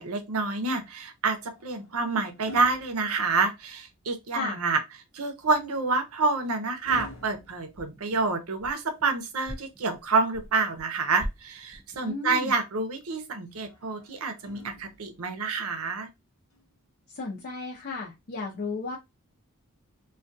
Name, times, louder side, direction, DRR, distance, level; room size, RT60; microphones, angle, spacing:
voice 1, 0.0-4.8 5.1-16.1, right 4 dB, 80° right, 0.6 m, -28 dB
sound 1, 1.3-3.8 5.4-8.5 10.3-11.5 13.5-15.3 16.5-16.7, left 1 dB, 90° left, 0.8 m, -48 dB
sound 2, 7.0-7.4 7.7-9.1 9.4-10.9 11.2-12.1, equal, 10° right, 0.3 m, -41 dB
voice 2, 12.0-12.5 17.1-19.0, left 4 dB, 50° left, 0.6 m, -34 dB
2.3 x 2.2 x 2.6 m
head